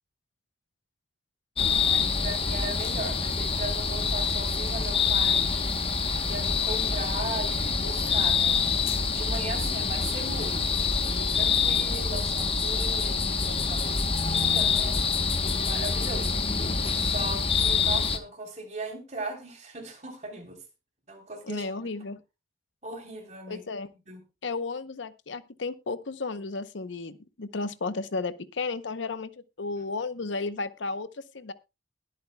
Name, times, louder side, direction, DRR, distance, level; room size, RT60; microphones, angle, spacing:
sound 1, 1.6-18.2, left 5 dB, 30° left, 1.0 m, -26 dB
voice 1, 1.7-5.7 6.2-8.6 9.1-10.8 11.1-15.0 15.4-16.4 16.9-20.6 21.1-21.9 22.8-23.7 24.1-24.2, right 2 dB, 40° right, 3 dB, 3.4 m, -38 dB
voice 2, 21.4-22.2 23.5-23.9 24.4-29.3 29.6-31.5, left 3 dB, 75° left, 13 dB, 0.8 m, -33 dB
21.5 x 8.5 x 2.2 m, 0.26 s
head